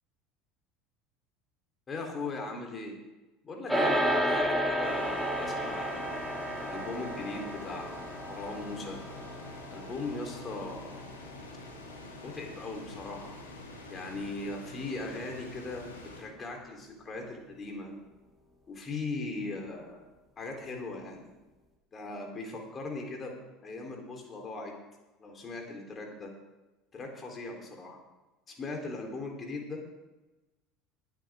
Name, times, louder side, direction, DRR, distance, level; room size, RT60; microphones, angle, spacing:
voice 1, 1.9-3.0 3.4-6.0 6.6-7.9 8.3-9.0 9.7-10.9 12.2-13.4 13.9-15.9 16.2-17.9 18.7-20.0 20.4-21.3 21.9-23.3 23.6-24.7 25.2-26.3 26.9-28.0 28.5-29.8, left 3 dB, 30° left, 2 dB, 3.7 m, -39 dB
sound 1, 3.7-13.2, equal, ahead, 2.8 m, -33 dB
sound 2, 4.8-16.2, left 2 dB, 85° left, 2.4 m, -47 dB
20.5 x 9.3 x 3.7 m, 1.1 s
figure-of-eight pair, 70°, 0 cm